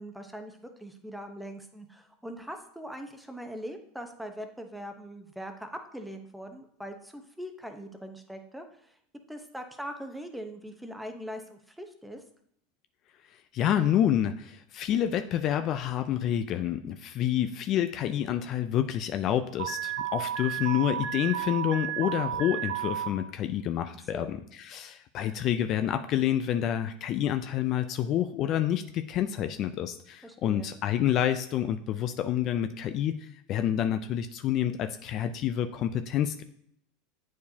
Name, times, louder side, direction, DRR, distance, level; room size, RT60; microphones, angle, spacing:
voice 1, 0.0-8.9 9.3-12.2 24.1-24.4 30.2-30.7, equal, ahead, 5 dB, 0.8 m, -41 dB
voice 2, 13.5-33.2 33.5-36.4, left 10 dB, 45° left, 9 dB, 0.4 m, -28 dB
Alarm, 19.6-23.1, right 11 dB, 80° right, 1.3 m, -32 dB
8.3 x 4.6 x 2.8 m, 0.69 s
supercardioid pair, 110°, 0 cm